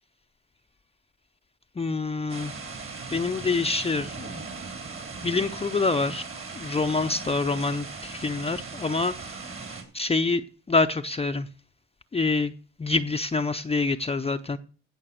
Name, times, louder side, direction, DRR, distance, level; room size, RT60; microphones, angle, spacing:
voice 1, 1.8-2.5 3.1-4.4 5.2-6.2 6.6-9.5 9.9-10.4 10.7-11.5 12.1-12.5 12.8-14.6, left 3 dB, 20° left, 0.6 m, -26 dB
sound 1, 2.3-9.8, right 4 dB, 45° right, 3.4 m, -38 dB
16.0 x 5.8 x 6.8 m
cardioid pair, 90°, 30 cm